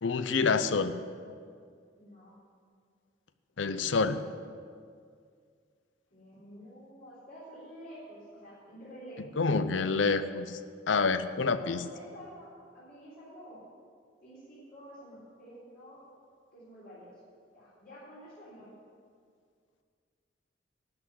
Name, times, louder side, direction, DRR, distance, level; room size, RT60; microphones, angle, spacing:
voice 1, 0.0-0.9 3.6-4.2 9.4-10.6 10.9-11.8, left 4 dB, 80° left, 12 dB, 0.6 m, -27 dB
voice 2, 2.0-2.4 6.1-10.0 11.4-13.6 14.2-16.0 16.5-17.2 17.5-18.7, equal, 50° left, -11 dB, 3.7 m, -50 dB
12.5 x 6.2 x 9.4 m, 2.2 s
head